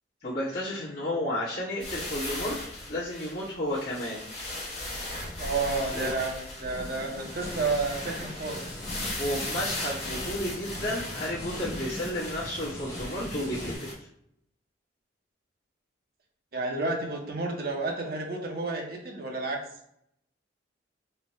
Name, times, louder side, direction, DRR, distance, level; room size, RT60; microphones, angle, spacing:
voice 1, 0.2-2.6 2.9-4.3 5.9-6.1 9.2-13.9, left 1 dB, 55° left, -12 dB, 1.1 m, -32 dB
sound 1, 1.8-13.9, left 1 dB, 35° left, 1.2 m, -38 dB
sound 2, 4.7-13.8, equal, 20° left, 1.0 m, -41 dB
voice 2, 5.4-8.6 16.5-19.6, right 3 dB, 55° right, 0 dB, 0.7 m, -31 dB
3.3 x 2.2 x 4.0 m, 0.74 s
head